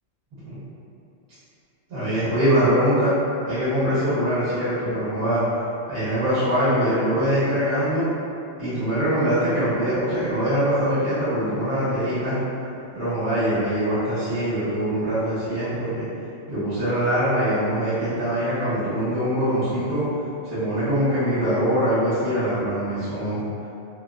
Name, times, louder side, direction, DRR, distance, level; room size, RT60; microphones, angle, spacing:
voice 1, 1.9-3.1 3.4-5.4 5.9-8.1 8.6-12.4 12.9-16.1 16.5-20.1 20.4-23.4, equal, 60° right, -13 dB, 1.2 m, -23 dB
2.9 x 2.1 x 2.4 m, 2.6 s
omnidirectional pair, 1.2 m